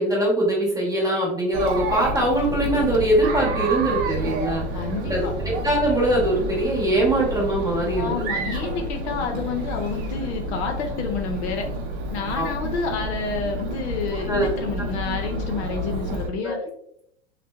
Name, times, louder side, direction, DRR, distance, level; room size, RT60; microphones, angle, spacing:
voice 1, 0.0-4.6 5.0-8.2 12.4-12.5 14.3-14.5 16.4-16.6, right 1 dB, 10° right, -4 dB, 0.9 m, -22 dB
Chatter, 1.5-16.3, right 1 dB, 55° right, 0.6 m, -29 dB
voice 2, 4.7-5.3 8.0-11.7 12.1-16.6, left 5 dB, 70° left, 3 dB, 0.6 m, -29 dB
2.7 x 2.1 x 2.2 m, 0.71 s
hypercardioid pair, 100°, 35 cm